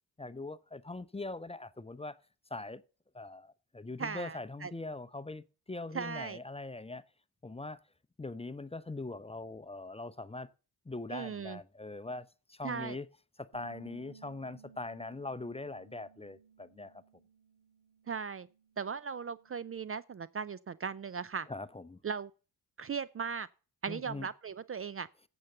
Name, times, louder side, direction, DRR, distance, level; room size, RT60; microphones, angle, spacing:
voice 1, 0.2-2.2 2.5-2.8 3.1-7.0 7.4-7.8 8.2-10.5 10.8-13.1 13.4-17.0 21.5-22.0 23.9-24.3, left 2 dB, 15° left, 0.7 m, -42 dB
voice 2, 4.0-4.7 5.9-6.4 11.1-11.6 12.6-13.0 18.1-18.5 18.8-21.5 22.0-22.3 22.8-23.5 23.8-25.1, right 6 dB, 35° right, 0.5 m, -38 dB
Bass guitar, 13.5-19.8, right 7 dB, 65° right, 5.9 m, -59 dB
8.8 x 7.2 x 6.6 m
supercardioid pair, 55°, 41 cm